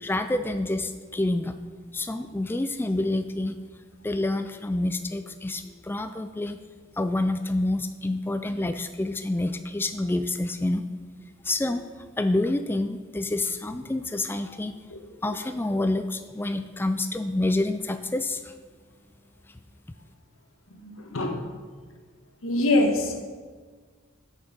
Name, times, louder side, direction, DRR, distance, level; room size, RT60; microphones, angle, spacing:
voice 1, 0.0-1.5 1.9-3.6 4.0-6.6 7.0-10.9 11.4-14.8 15.2-18.5, left 2 dB, 10° left, 8 dB, 0.3 m, -28 dB
voice 2, 20.8-21.4 22.4-23.3, left 2 dB, 85° left, 3 dB, 1.5 m, -24 dB
8.9 x 6.5 x 6.2 m, 1.5 s
head